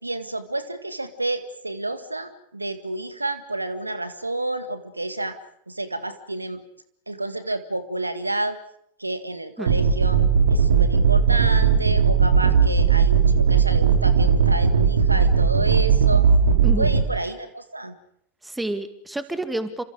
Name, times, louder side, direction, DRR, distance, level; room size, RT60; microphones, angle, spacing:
voice 1, 0.0-5.4 5.7-6.6 7.1-8.6 9.0-10.2 10.5-16.3 16.8-17.9, right 2 dB, 85° right, 11 dB, 1.9 m, -30 dB
sound 1, 9.7-17.0, right 6 dB, 65° right, 3.0 m, -18 dB
voice 2, 18.4-19.8, right 1 dB, 5° right, 10 dB, 2.3 m, -29 dB
29.0 x 27.0 x 5.1 m, 0.72 s
figure-of-eight pair, 90°, 0 cm